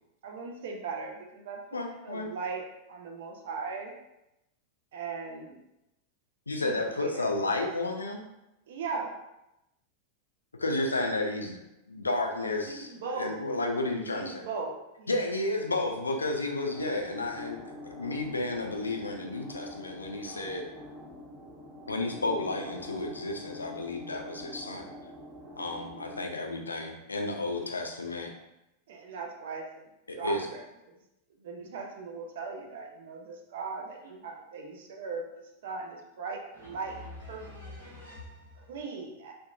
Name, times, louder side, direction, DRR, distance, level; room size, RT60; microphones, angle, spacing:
voice 1, 0.2-1.6 2.0-3.9 4.9-5.6 6.6-7.3 8.7-9.1 12.7-13.4 14.1-15.1 28.9-29.8 30.1-31.0 31.4-37.0 37.3-37.7 38.5-39.3, right 4 dB, 55° right, 2 dB, 0.4 m, -38 dB
voice 2, 1.7-2.3 6.5-8.2 10.6-14.4 15.1-17.6 17.8-20.6 21.9-24.9 25.6-28.3 30.1-30.4, left 2 dB, 80° left, 2 dB, 0.3 m, -32 dB
sound 1, 16.7-26.2, left 1 dB, 35° right, 1.1 m, -45 dB
voice 3, 36.5-38.6, left 2 dB, 80° right, -6 dB, 1.0 m, -46 dB
2.7 x 2.1 x 2.4 m, 0.91 s
figure-of-eight pair, 90°, 0 cm